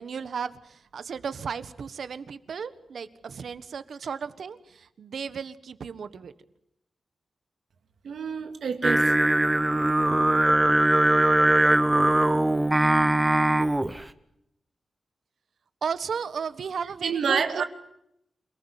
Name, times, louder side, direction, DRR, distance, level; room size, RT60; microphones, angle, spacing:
voice 1, 0.0-6.3 15.8-17.6, right 6 dB, 70° right, 13 dB, 1.5 m, -34 dB
voice 2, 8.0-9.1 17.0-17.6, right 6 dB, 85° right, 7 dB, 2.3 m, -27 dB
Singing, 8.8-14.0, right 1 dB, 10° right, 1.1 m, -21 dB
28.0 x 19.5 x 9.2 m, 0.79 s
wide cardioid pair, 145°, 0 cm